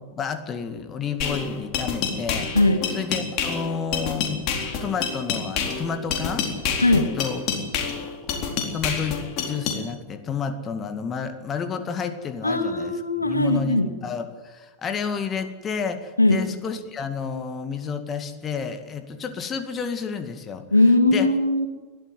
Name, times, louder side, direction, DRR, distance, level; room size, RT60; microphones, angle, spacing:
voice 1, 0.1-2.6 2.9-6.5 6.9-7.4 7.8-8.1 8.7-12.9 13.2-20.7 21.1-21.3, left 6 dB, 25° left, 8 dB, 2.0 m, -30 dB
sound 1, 1.2-9.8, left 6 dB, 40° left, 4.0 m, -28 dB
voice 2, 12.4-13.9 16.2-16.4 20.7-21.7, left 2 dB, 85° left, 7 dB, 2.2 m, -19 dB
22.0 x 13.5 x 9.5 m, 1.2 s
figure-of-eight pair, 90°, 0 cm